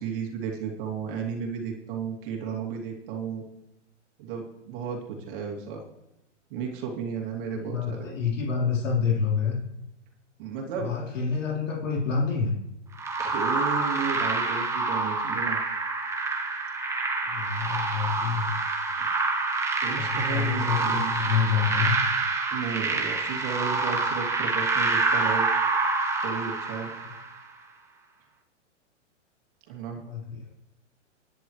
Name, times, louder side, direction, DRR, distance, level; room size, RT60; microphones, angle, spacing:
voice 1, 0.0-3.4 4.2-5.8 6.5-8.1 10.4-10.9 13.2-15.6 19.0-19.1 19.8-21.4 22.5-25.5 26.2-26.9 29.7-30.0, right 6 dB, 45° right, 1 dB, 2.7 m, -33 dB
voice 2, 7.6-9.6 10.7-12.5 17.2-18.5 19.9-21.9 27.0-27.1 29.9-30.5, left 6 dB, 80° left, -3 dB, 4.2 m, -28 dB
sound 1, 13.0-27.4, right 3 dB, 5° right, 1.2 m, -27 dB
21.0 x 10.5 x 3.2 m, 0.90 s
hypercardioid pair, 145°, 37 cm